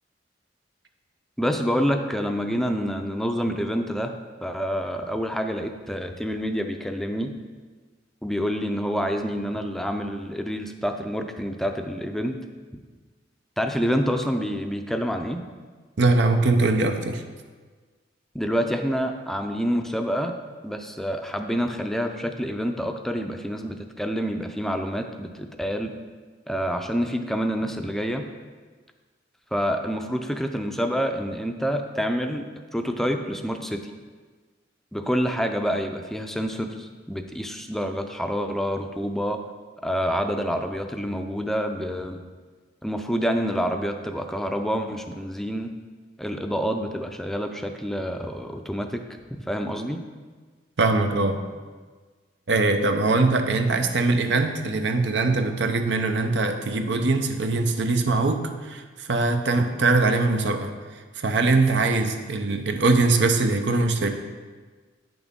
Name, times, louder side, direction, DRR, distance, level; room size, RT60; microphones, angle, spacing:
voice 1, 1.4-4.1 4.4-7.3 8.2-12.4 13.6-15.4 18.3-20.3 20.6-25.9 26.5-28.2 29.5-32.5 32.7-33.8 34.9-39.4 39.8-42.2 42.8-45.7 46.2-49.0 49.5-50.0, equal, ahead, 5 dB, 0.4 m, -27 dB
voice 2, 16.0-17.2 50.8-51.4 52.5-60.7 61.2-64.1, right 3 dB, 85° right, 6 dB, 0.7 m, -22 dB
8.9 x 6.1 x 3.6 m, 1.4 s
head